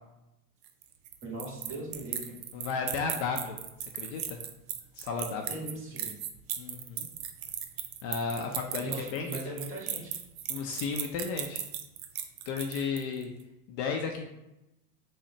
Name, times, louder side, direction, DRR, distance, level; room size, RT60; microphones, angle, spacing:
sound 1, 0.6-13.2, right 10 dB, 75° right, 0.6 m, -37 dB
voice 1, 1.2-2.4 5.5-6.1 8.8-10.2, right 2 dB, 25° right, -2 dB, 1.5 m, -39 dB
voice 2, 2.5-3.6 3.9-4.4 5.0-5.5 6.6-7.1 8.0-9.3 10.5-11.6 12.5-13.3 13.7-14.2, left 5 dB, 45° left, 3 dB, 0.5 m, -33 dB
3.7 x 2.1 x 4.2 m, 0.93 s
hypercardioid pair, 105°, 46 cm